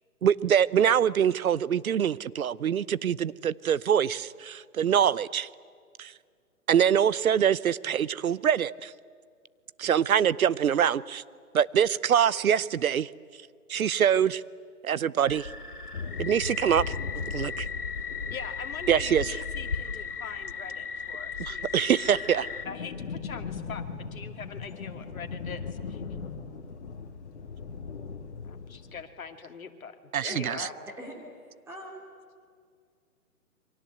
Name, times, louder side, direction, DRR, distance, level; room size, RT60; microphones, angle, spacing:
voice 1, 0.2-5.5 6.0-6.1 6.7-8.9 9.8-11.2 11.5-13.1 13.7-14.4 14.8-15.5 16.2-17.7 18.9-19.4 21.4-22.5 30.1-30.7, right 8 dB, 65° right, 20 dB, 0.8 m, -24 dB
sound 1, 15.2-22.6, left 5 dB, 85° left, 2.9 m, -36 dB
sound 2, 15.9-21.3 21.6-29.0, left 5 dB, 45° left, 2.4 m, -40 dB
voice 2, 18.3-22.2 22.7-25.6 25.9-26.0 28.4-30.0 30.2-30.7, left 6 dB, 65° left, 6 dB, 2.5 m, -42 dB
voice 3, 30.3-32.0, equal, 5° right, -2 dB, 2.7 m, -43 dB
28.5 x 24.0 x 8.0 m, 2.1 s
hypercardioid pair, 155°, 45 cm